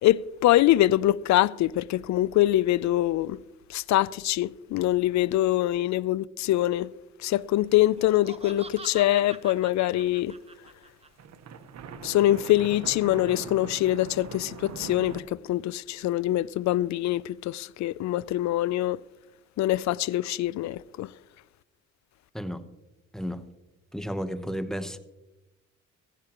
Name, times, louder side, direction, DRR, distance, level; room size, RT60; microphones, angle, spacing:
voice 1, 0.0-3.4 3.7-6.9 7.2-10.3 12.0-19.0 19.6-21.1, left 14 dB, 65° left, 0.4 m, -24 dB
sound 1, 7.3-8.4 8.8-10.4 10.7-10.8 11.0-15.2, right 6 dB, 60° right, 1.1 m, -42 dB
Laughter, 7.8-11.1, right 3 dB, 20° right, 1.0 m, -45 dB
voice 2, 23.9-25.0, equal, ahead, 0.9 m, -32 dB
15.5 x 15.0 x 2.9 m
cardioid pair, 90°, 30 cm